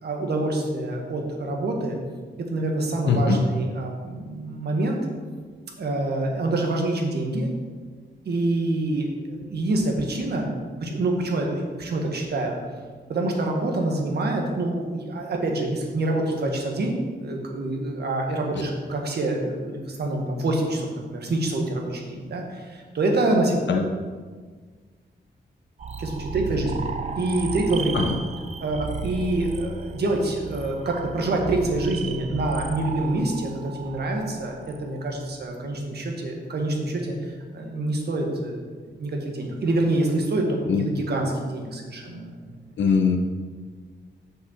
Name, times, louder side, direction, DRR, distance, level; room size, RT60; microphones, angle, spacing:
voice 1, 0.0-2.0 2.5-5.0 5.8-7.5 8.2-10.5 10.8-12.6 13.1-23.6 26.0-26.8 27.2-28.1 28.6-37.1 37.5-38.6 39.0-42.3, right 2 dB, 60° right, 1 dB, 1.6 m, -26 dB
voice 2, 3.1-3.4 23.7-23.8 27.9-28.2 40.7-40.8 42.8-43.2, left 5 dB, 80° left, 3 dB, 0.8 m, -21 dB
sound 1, 25.8-35.4, right 5 dB, 40° right, 0.5 m, -35 dB
6.6 x 5.4 x 6.6 m, 1.5 s
wide cardioid pair, 125°, 19 cm